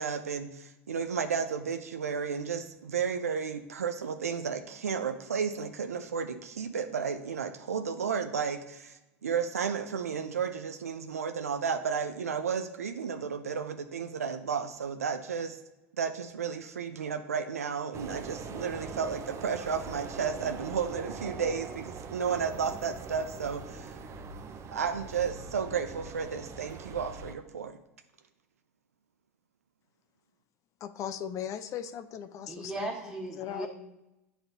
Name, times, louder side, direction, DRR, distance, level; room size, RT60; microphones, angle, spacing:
voice 1, 0.0-15.6 16.0-24.0 24.7-27.8, right 6 dB, 90° right, 7 dB, 0.4 m, -33 dB
sound 1, 17.9-27.3, right 4 dB, 35° right, 0.6 m, -42 dB
voice 2, 30.8-32.9 33.4-33.7, left 9 dB, 45° left, 11 dB, 0.5 m, -38 dB
voice 3, 32.5-33.7, right 2 dB, 15° right, -2 dB, 1.7 m, -37 dB
10.5 x 4.0 x 2.6 m, 0.97 s
hypercardioid pair, 80°, 8 cm